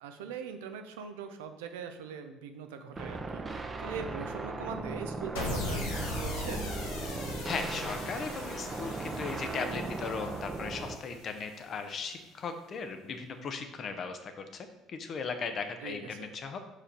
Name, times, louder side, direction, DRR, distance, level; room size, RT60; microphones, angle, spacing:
voice 1, 0.0-6.7 15.8-16.3, right 6 dB, 85° right, 7 dB, 0.6 m, -41 dB
sound 1, 3.0-11.0, right 3 dB, 25° right, 0.7 m, -38 dB
sound 2, 3.1-3.5 5.4-5.7 6.0-6.1 7.3-7.6 9.1-9.4, left 1 dB, 10° left, 0.9 m, -51 dB
sound 3, 5.4-11.7, left 2 dB, 85° left, 1.2 m, -39 dB
voice 2, 7.4-16.6, left 5 dB, 50° left, 7 dB, 0.8 m, -37 dB
5.2 x 5.0 x 4.3 m, 1.0 s
hypercardioid pair, 70°, 0 cm